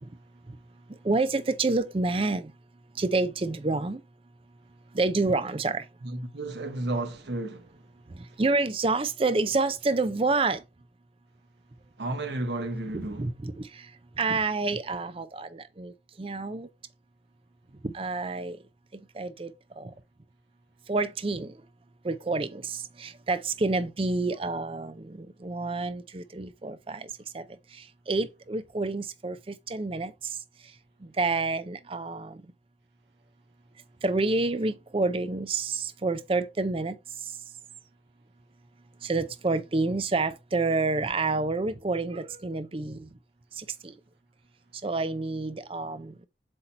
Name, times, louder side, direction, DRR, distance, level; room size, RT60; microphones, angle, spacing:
voice 1, 1.0-2.5 3.0-4.0 4.9-5.8 8.4-10.6 12.9-13.9 14.2-15.9 16.2-16.7 17.8-18.6 19.2-19.5 19.8-19.9 20.9-21.5 22.0-27.1 27.3-27.4 28.1-30.1 31.2-32.4 34.0-36.9 39.0-43.1 43.6-43.9 44.8-46.1, right 3 dB, 30° right, 0.5 m, -28 dB
voice 2, 6.0-7.6 12.0-13.2, right 2 dB, 70° right, 1.1 m, -32 dB
7.8 x 2.9 x 4.3 m
head